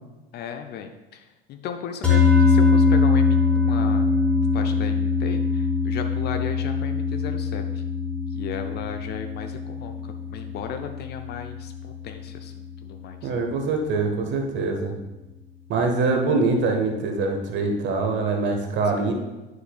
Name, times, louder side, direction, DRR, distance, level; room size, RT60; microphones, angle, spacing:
voice 1, 0.3-4.1 4.5-7.8 8.3-13.3, left 7 dB, 35° left, 6 dB, 0.6 m, -36 dB
sound 1, 2.0-12.5, left 4 dB, 5° left, 1.9 m, -22 dB
voice 2, 13.2-14.9 15.7-19.1, right 3 dB, 40° right, 3 dB, 1.4 m, -24 dB
9.3 x 6.5 x 2.4 m, 1.1 s
figure-of-eight pair, 75°, 30 cm